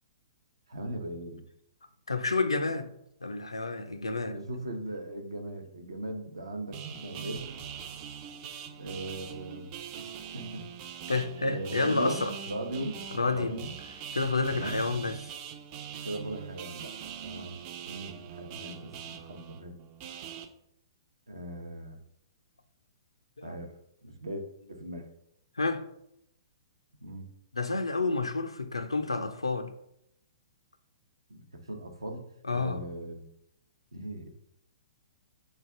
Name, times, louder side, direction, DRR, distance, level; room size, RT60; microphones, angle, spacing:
voice 1, 0.7-1.4 4.2-7.5 8.7-9.7 10.0-10.1 10.3-10.6 11.4-12.2 12.5-13.0 13.3-13.8 14.5-14.8 16.0-16.9 17.2-19.7 21.3-22.0 23.4-23.7 24.0-25.1 27.0-27.3 31.3-33.3 33.9-34.3, right 1 dB, 75° right, 0.7 m, -39 dB
voice 2, 2.1-2.9 3.2-4.4 11.1-12.3 13.1-13.5 14.1-15.2 23.4-23.6 25.6-25.8 27.5-29.7 32.4-32.8, left 3 dB, 80° left, 0.4 m, -29 dB
sound 1, 6.7-20.5, right 8 dB, 30° right, 0.4 m, -42 dB
3.2 x 2.4 x 4.4 m
figure-of-eight pair, 120°, 3 cm